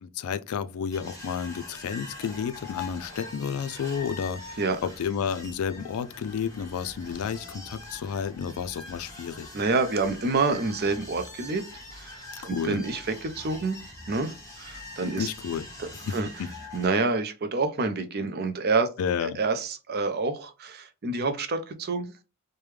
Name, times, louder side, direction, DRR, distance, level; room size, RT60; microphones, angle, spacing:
voice 1, 0.0-4.4 4.8-9.5 12.4-12.8 15.2-15.7 16.1-16.2 16.4-16.5 19.0-19.4, left 7 dB, 75° left, 0.3 m, -31 dB
sound 1, 0.9-16.9, left 2 dB, 15° left, 1.3 m, -43 dB
voice 2, 9.5-11.6 11.9-13.8 14.1-15.3 15.8-16.4 16.7-18.9 19.2-22.1, right 3 dB, 45° right, 0.5 m, -28 dB
3.2 x 2.2 x 3.2 m
head